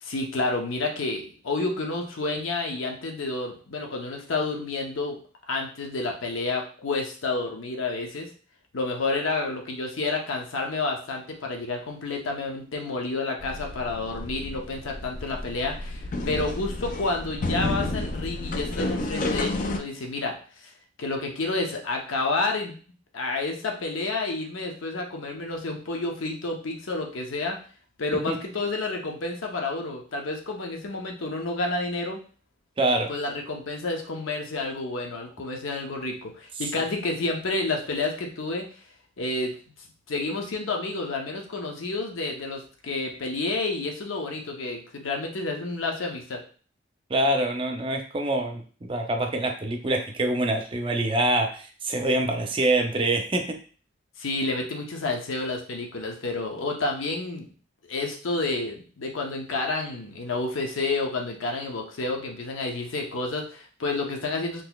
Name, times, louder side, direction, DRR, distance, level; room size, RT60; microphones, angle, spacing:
voice 1, 0.0-5.2 5.5-8.3 8.7-20.7 21.0-22.7 23.1-27.6 28.0-32.2 33.1-38.7 39.2-39.6 40.1-46.4 54.2-57.5 57.9-64.6, left 3 dB, 90° left, 2 dB, 0.7 m, -30 dB
sound 1, 13.4-19.8, left 2 dB, 40° left, 0.3 m, -31 dB
voice 2, 32.8-33.1 47.1-48.6 48.9-53.6, right 1 dB, 25° right, 3 dB, 0.5 m, -25 dB
3.8 x 2.9 x 2.3 m, 0.40 s
head